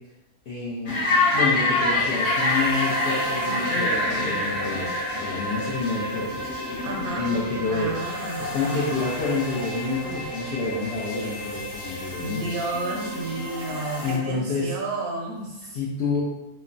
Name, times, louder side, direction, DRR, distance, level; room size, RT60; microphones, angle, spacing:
voice 1, 0.5-1.0 1.3-4.9 5.1-6.5 7.2-8.0 8.4-12.5 14.0-14.7 15.7-16.2, left 3 dB, 75° left, -7 dB, 0.6 m, -28 dB
sound 1, 0.9-14.2, left 1 dB, 55° left, 1.3 m, -27 dB
voice 2, 6.8-7.3 7.7-8.9 12.1-15.7, right 2 dB, 75° right, 0 dB, 1.0 m, -32 dB
3.1 x 2.0 x 2.4 m, 0.96 s
omnidirectional pair, 1.6 m